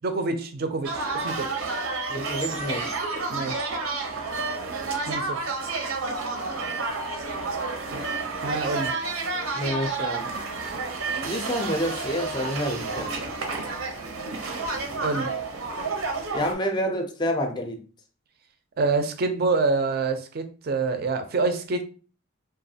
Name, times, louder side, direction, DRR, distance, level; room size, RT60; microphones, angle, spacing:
voice 1, 0.0-1.5 3.3-3.7 5.1-5.4 8.4-8.9 15.0-15.3 18.8-21.8, right 3 dB, 50° right, 0.4 m, -26 dB
sound 1, 0.8-16.5, right 3 dB, 90° right, 0.6 m, -30 dB
voice 2, 2.1-3.0 9.5-10.3 11.2-13.1 16.3-17.8, equal, 20° left, 0.4 m, -28 dB
3.0 x 2.3 x 2.6 m
head